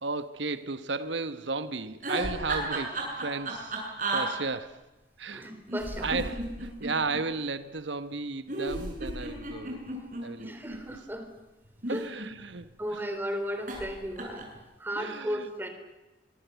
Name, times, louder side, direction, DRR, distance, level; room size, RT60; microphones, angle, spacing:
voice 1, 0.0-3.9 4.1-4.8 5.2-5.5 6.0-9.8 10.2-10.6 11.9-13.1 15.0-15.5, right 3 dB, 85° right, 1.1 m, -34 dB
sound 1, 1.9-4.2 5.7-7.2 8.5-10.8 11.7-12.6 13.7-13.9 14.2-14.6, right 2 dB, 45° right, 7.5 m, -33 dB
voice 2, 5.3-6.2 10.4-11.3 11.9-12.0 12.8-14.4 14.8-15.7, equal, 10° right, 3.7 m, -35 dB
24.5 x 24.0 x 8.1 m
head